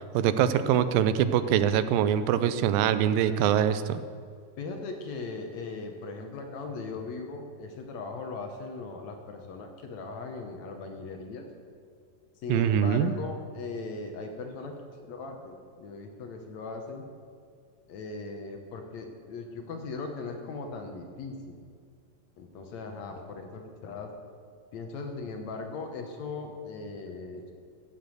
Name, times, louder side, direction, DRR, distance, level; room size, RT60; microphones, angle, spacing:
voice 1, 0.0-4.0 12.5-13.1, right 9 dB, 85° right, 12 dB, 2.4 m, -24 dB
voice 2, 4.6-11.5 12.4-14.7 15.1-17.1 17.9-21.6 22.4-24.2 24.7-27.5, left 3 dB, 65° left, 4 dB, 2.0 m, -39 dB
13.0 x 7.8 x 7.7 m, 2.1 s
omnidirectional pair, 4.0 m